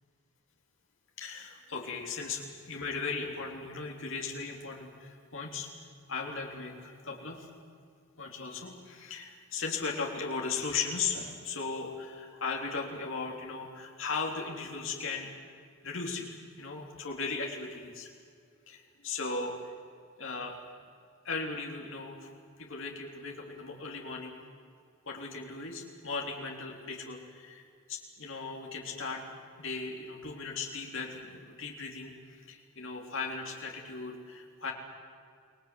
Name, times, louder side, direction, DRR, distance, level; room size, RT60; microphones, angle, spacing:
voice 1, 1.2-5.7 6.1-7.5 8.2-15.3 15.8-16.3 16.6-18.1 18.7-19.7 20.2-20.6 21.2-22.3 22.6-24.4 25.1-29.2 29.6-34.7, left 4 dB, 65° left, 0 dB, 3.6 m, -37 dB
29.5 x 21.0 x 7.8 m, 2.2 s
head